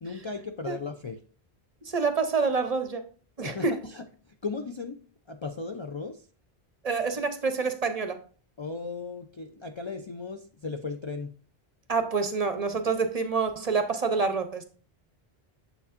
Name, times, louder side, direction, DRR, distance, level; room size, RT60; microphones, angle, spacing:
voice 1, 0.0-1.2 3.4-5.0 5.3-6.3 8.6-11.4, left 4 dB, 45° left, 0.4 m, -36 dB
voice 2, 1.8-3.0 3.4-3.7 6.8-8.2 11.9-14.6, right 4 dB, 45° right, 0.7 m, -27 dB
7.1 x 6.9 x 2.5 m
omnidirectional pair, 1.1 m